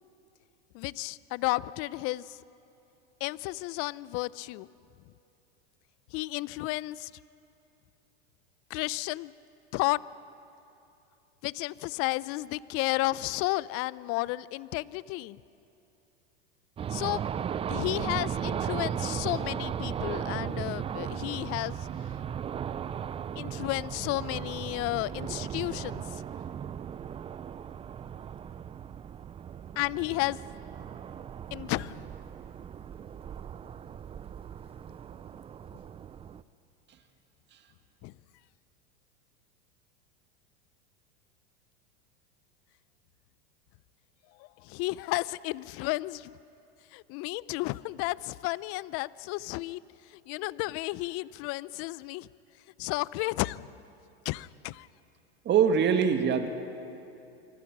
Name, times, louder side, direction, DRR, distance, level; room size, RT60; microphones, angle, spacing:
voice 1, 0.7-2.4 3.2-4.7 6.1-7.1 8.7-9.3 9.7-10.0 11.4-15.4 16.9-17.2 17.7-21.9 23.4-26.2 29.8-30.4 31.5-32.0 38.0-38.1 44.4-46.4 46.9-49.8 50.1-52.3 52.8-53.7 54.2-54.9, left 20 dB, 45° left, 20 dB, 0.6 m, -32 dB
sound 1, 16.8-36.4, right 8 dB, 20° right, 0.5 m, -37 dB
voice 2, 55.5-56.5, right 7 dB, 35° right, 7 dB, 2.0 m, -23 dB
27.0 x 24.0 x 6.1 m, 2.7 s
supercardioid pair, 115°, 31 cm